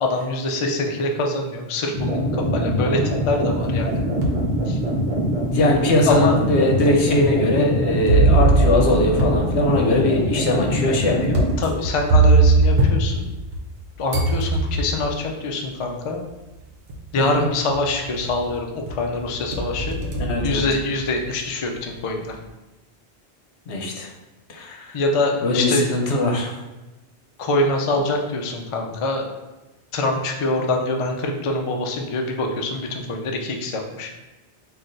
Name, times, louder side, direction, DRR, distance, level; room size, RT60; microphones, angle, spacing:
voice 1, 0.0-4.0 4.7-4.8 6.1-6.4 11.6-13.3 14.0-16.2 17.1-20.0 20.4-22.4 24.9-25.9 27.4-29.3 29.9-34.1, left 2 dB, 55° left, 2 dB, 0.3 m, -24 dB
sound 1, 1.9-11.5, equal, 35° right, 1.1 m, -23 dB
sound 2, 3.6-4.5 5.1-5.2 6.1-6.2 8.1-13.8 14.1-15.1 16.3-16.4 16.9-17.3 17.7-18.5 18.9-21.2, right 3 dB, 65° right, 0.9 m, -21 dB
voice 2, 5.5-11.4 17.2-17.4 20.3-20.7 23.7-24.1 24.5-25.0 25.4-26.5, left 2 dB, 80° left, 1 dB, 1.0 m, -21 dB
5.8 x 2.4 x 2.6 m, 1.1 s
omnidirectional pair, 1.1 m